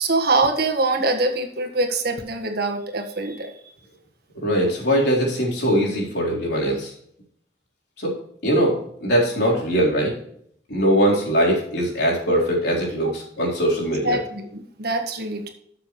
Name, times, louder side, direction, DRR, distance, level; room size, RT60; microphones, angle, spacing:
voice 1, 0.0-3.5 14.0-15.5, right 2 dB, 60° right, 4 dB, 1.7 m, -24 dB
voice 2, 4.4-6.9 8.0-8.2 8.4-10.1 10.7-14.2, equal, 65° left, -3 dB, 4.0 m, -21 dB
13.5 x 6.9 x 3.2 m, 0.66 s
head